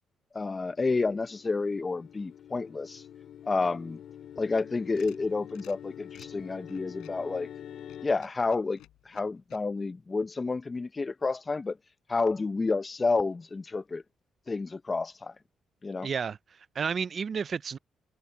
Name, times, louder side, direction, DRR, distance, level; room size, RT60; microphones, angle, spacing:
voice 1, 0.3-3.0 3.5-4.0 4.4-7.5 8.0-8.8 9.1-11.8 12.1-14.0 14.5-15.3 15.8-16.1, left 3 dB, 25° left, 0.8 m, -30 dB
sound 1, 0.7-8.1, left 10 dB, 70° left, 4.3 m, -46 dB
sound 2, 4.6-7.3 7.8-9.6, left 14 dB, 90° left, 5.0 m, -56 dB
voice 2, 16.0-17.8, right 6 dB, 45° right, 0.5 m, -32 dB
cardioid pair, 90°, 0 cm